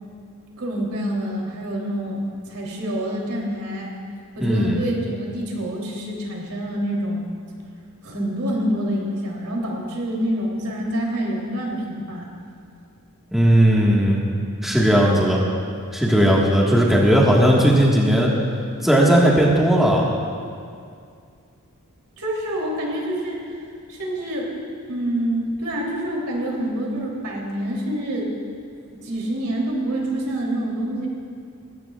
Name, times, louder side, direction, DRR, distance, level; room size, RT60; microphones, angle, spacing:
voice 1, 0.6-2.2 2.5-3.9 4.4-7.3 8.0-12.3 22.2-23.4 23.9-24.5 24.9-28.3 29.0-31.1, right 1 dB, 75° right, -2 dB, 3.1 m, -26 dB
voice 2, 4.4-4.8 13.3-14.2 14.6-15.4 15.9-18.3 18.8-20.1, equal, ahead, -4 dB, 1.5 m, -17 dB
19.5 x 16.5 x 2.4 m, 2.3 s
head